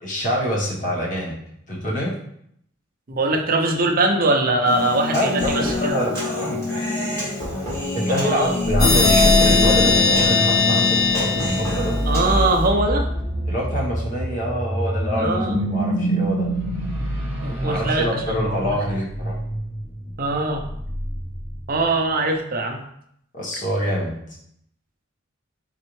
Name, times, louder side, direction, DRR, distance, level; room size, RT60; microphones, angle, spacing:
voice 1, 0.0-1.4 1.7-2.1 5.1-6.6 7.9-12.0 13.5-16.5 17.6-19.4 23.3-24.2, equal, 40° left, -4 dB, 1.2 m, -26 dB
voice 2, 3.1-6.0 8.1-8.5 12.1-13.1 15.2-15.6 17.4-18.2 18.5-18.8 20.2-20.7 21.7-22.8, right 2 dB, 45° right, 3 dB, 0.6 m, -22 dB
Human voice, 4.7-12.7, left 2 dB, 15° left, 1.6 m, -27 dB
sound 1, 8.6-21.9, equal, 10° right, 1.0 m, -26 dB
sound 2, 8.8-12.4, left 4 dB, 70° left, 0.8 m, -19 dB
4.2 x 3.8 x 3.1 m, 0.72 s
head